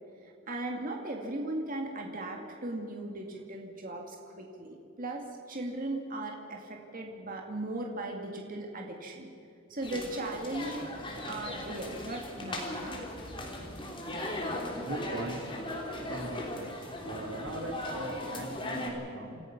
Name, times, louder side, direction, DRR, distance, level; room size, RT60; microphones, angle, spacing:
voice 1, 0.5-9.3 9.7-11.0 11.3-13.0, right 2 dB, 45° right, 1 dB, 2.1 m, -38 dB
sound 1, 9.8-18.9, left 1 dB, 25° left, 3.4 m, -38 dB
voice 2, 14.8-15.7 16.1-19.4, right 2 dB, 70° right, 4 dB, 2.5 m, -40 dB
27.5 x 16.0 x 5.9 m, 2.6 s
head